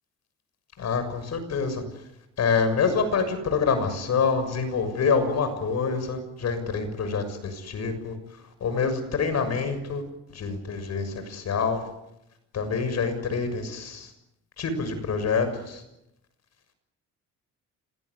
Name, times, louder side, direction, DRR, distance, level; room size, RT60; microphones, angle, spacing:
voice 1, 0.8-1.8 2.4-8.1 8.6-10.0 10.3-11.8 12.5-14.1 14.6-15.8, left 5 dB, 60° left, 9 dB, 6.8 m, -26 dB
26.0 x 20.0 x 9.8 m, 0.88 s
cardioid pair, 90°, 30 cm